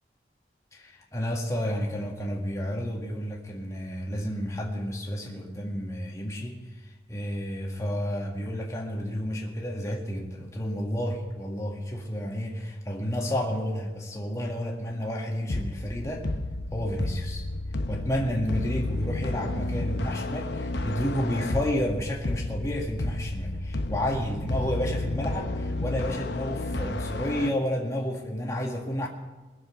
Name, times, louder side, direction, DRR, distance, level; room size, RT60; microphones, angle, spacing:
voice 1, 0.7-6.6 7.1-16.3 16.7-17.4 17.9-29.1, equal, 15° left, -1 dB, 1.8 m, -31 dB
sound 1, 15.5-27.5, left 2 dB, 70° left, 0.9 m, -32 dB
21.0 x 7.4 x 5.8 m, 1.2 s
head